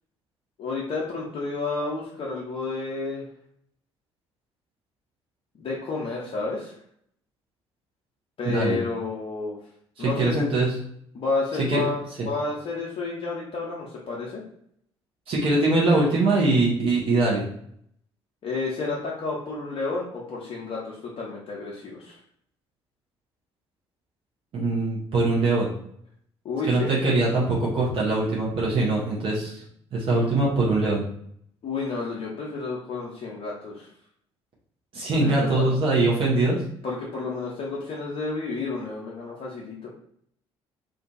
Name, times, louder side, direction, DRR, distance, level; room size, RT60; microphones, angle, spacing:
voice 1, 0.6-3.2 5.6-6.7 8.4-9.6 10.0-10.4 11.1-14.4 18.4-22.2 26.4-27.0 31.6-33.9 35.1-35.7 36.8-39.9, left 3 dB, 40° left, -4 dB, 0.6 m, -31 dB
voice 2, 8.4-8.8 10.0-10.7 11.7-11.8 15.3-17.4 24.5-25.7 26.6-29.6 29.9-31.0 34.9-36.6, right 2 dB, 40° right, -5 dB, 0.8 m, -22 dB
2.5 x 2.2 x 2.5 m, 0.68 s
figure-of-eight pair, 50°, 14 cm